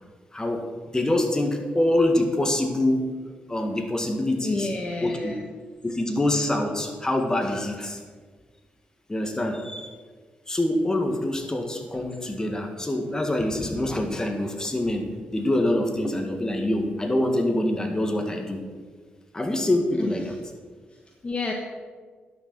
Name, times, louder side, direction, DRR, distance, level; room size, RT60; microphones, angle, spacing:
voice 1, 0.3-3.0 3.5-4.7 5.0-5.3 5.8-8.0 9.1-9.9 10.5-18.6 19.3-20.2, left 1 dB, 20° left, 3 dB, 1.8 m, -25 dB
voice 2, 4.4-5.4 19.9-20.4 20.9-21.5, left 3 dB, 35° left, 1 dB, 1.2 m, -31 dB
11.0 x 6.6 x 6.2 m, 1.5 s
cardioid pair, 75°, 4 cm